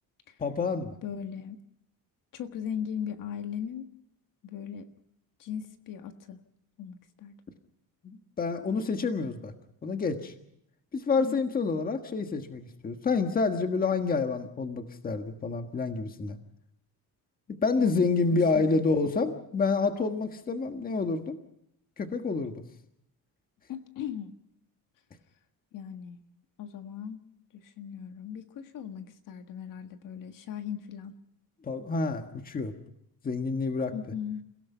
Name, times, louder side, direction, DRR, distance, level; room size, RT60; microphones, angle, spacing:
voice 1, 0.4-1.0 8.0-9.5 9.8-10.3 10.9-16.4 17.6-21.4 22.0-22.6 31.6-32.7 33.2-33.9, left 4 dB, 25° left, 6 dB, 1.5 m, -28 dB
voice 2, 1.0-1.6 2.3-3.9 4.4-4.9 5.4-6.4 6.8-7.3 11.2-11.4 17.8-18.7 23.7-24.3 25.7-26.2 26.6-27.2 27.5-31.1 33.9-34.4, left 8 dB, 60° left, 7 dB, 1.7 m, -38 dB
29.0 x 17.0 x 5.6 m, 0.75 s
cardioid pair, 175°, 36 cm